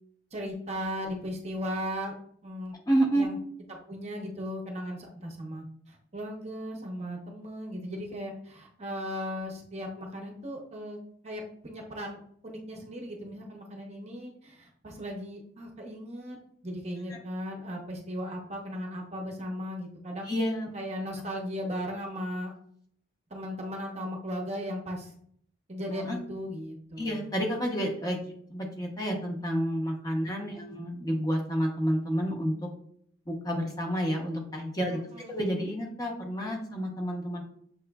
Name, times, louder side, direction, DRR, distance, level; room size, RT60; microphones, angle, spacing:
voice 1, 0.3-2.1 2.4-2.7 3.1-3.4 3.7-11.0 11.2-12.2 12.4-16.4 16.6-20.3 20.7-22.5 23.3-25.1 25.7-27.3 30.6-30.9 34.9-35.5, equal, 30° right, 1 dB, 0.7 m, -37 dB
voice 2, 2.9-3.3 20.3-20.7 26.0-26.2 27.0-28.2 28.5-32.7 33.3-35.0 35.3-37.4, equal, 20° left, 0 dB, 0.7 m, -29 dB
6.7 x 3.1 x 2.3 m, 0.64 s
head